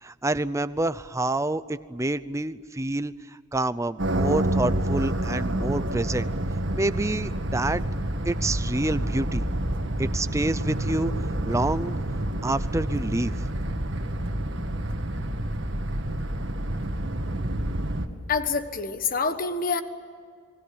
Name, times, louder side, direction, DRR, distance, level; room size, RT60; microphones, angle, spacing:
voice 1, 0.0-3.1 3.5-6.3 6.7-7.8 8.2-9.5 10.0-11.1 11.4-12.0 12.4-13.5, right 2 dB, 15° right, 14 dB, 0.6 m, -27 dB
sound 1, 4.0-18.1, right 1 dB, 55° right, 1.9 m, -28 dB
voice 2, 18.3-19.8, left 5 dB, 40° left, 9 dB, 1.4 m, -26 dB
29.0 x 21.0 x 8.7 m, 2.2 s
head